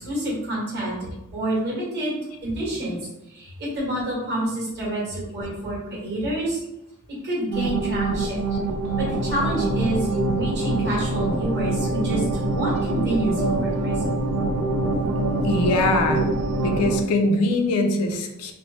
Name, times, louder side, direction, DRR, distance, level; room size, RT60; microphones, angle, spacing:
voice 1, 0.0-2.2 2.4-3.0 3.3-6.6 7.2-8.4 9.0-14.3, right 1 dB, 50° right, -6 dB, 1.3 m, -28 dB
sound 1, 7.5-17.0, right 2 dB, 90° right, 0.4 m, -24 dB
voice 2, 15.4-16.3 16.6-18.5, left 2 dB, 75° left, 4 dB, 0.4 m, -22 dB
3.2 x 2.0 x 2.7 m, 0.87 s
head